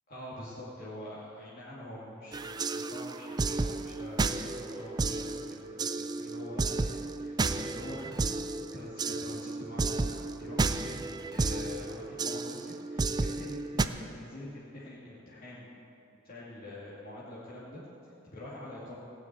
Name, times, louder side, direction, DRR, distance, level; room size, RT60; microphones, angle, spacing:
voice 1, 0.1-11.0 11.3-15.8 16.2-19.0, left 1 dB, 45° left, -8 dB, 2.3 m, -45 dB
sound 1, 2.3-13.9, right 3 dB, 20° right, 0.4 m, -32 dB
17.0 x 6.1 x 8.9 m, 2.9 s
head